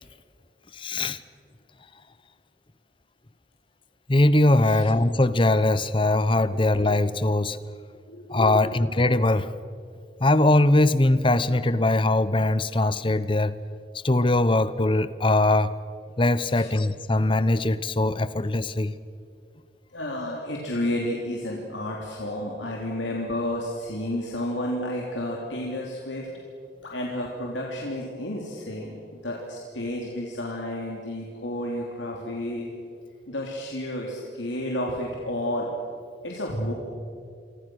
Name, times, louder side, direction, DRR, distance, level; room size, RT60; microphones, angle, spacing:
voice 1, 0.7-1.2 4.1-7.6 8.3-9.5 10.2-13.5 14.0-15.7 16.2-18.9, left 2 dB, 25° left, 15 dB, 0.8 m, -21 dB
voice 2, 8.1-8.7 16.5-16.8 19.9-26.5 26.8-32.7 33.3-35.7 36.2-36.7, left 1 dB, 80° left, -2 dB, 3.3 m, -31 dB
28.5 x 25.0 x 6.3 m, 2.4 s
head